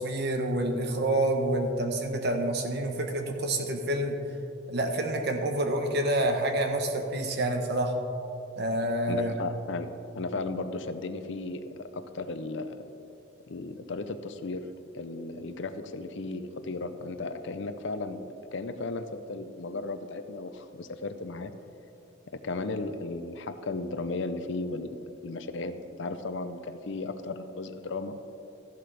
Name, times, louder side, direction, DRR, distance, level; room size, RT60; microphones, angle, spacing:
voice 1, 0.0-4.2 4.7-8.0 8.6-9.3, right 1 dB, 55° right, 4 dB, 1.1 m, -28 dB
voice 2, 9.1-9.9 10.1-12.8 13.5-14.6 14.9-21.5 22.3-28.3, left 3 dB, 65° left, 10 dB, 0.6 m, -35 dB
13.5 x 11.5 x 3.4 m, 2.8 s
head